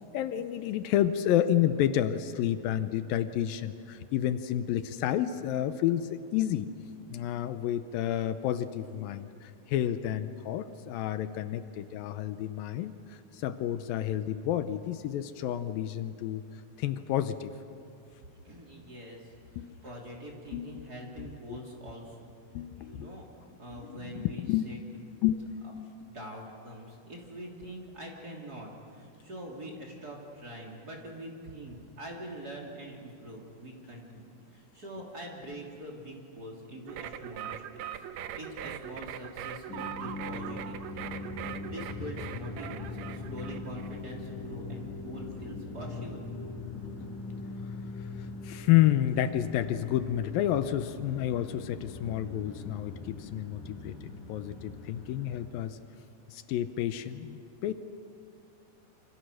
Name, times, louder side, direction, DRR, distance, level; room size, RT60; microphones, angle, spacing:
voice 1, 0.1-6.7 7.1-16.4 16.8-17.5 19.6-19.8 20.5-21.6 22.5-23.1 23.7-24.6 25.2-25.6 48.2-55.8 56.3-57.7, left 11 dB, 80° left, 11 dB, 2.5 m, -30 dB
voice 2, 18.3-22.3 22.8-24.8 26.0-46.3, right 1 dB, 25° right, 0 dB, 3.4 m, -44 dB
sound 1, 36.9-44.0, right 10 dB, 80° right, 1.6 m, -41 dB
sound 2, 39.7-55.5, left 3 dB, 60° left, 6.3 m, -41 dB
28.0 x 26.0 x 6.4 m, 2.5 s
omnidirectional pair, 4.2 m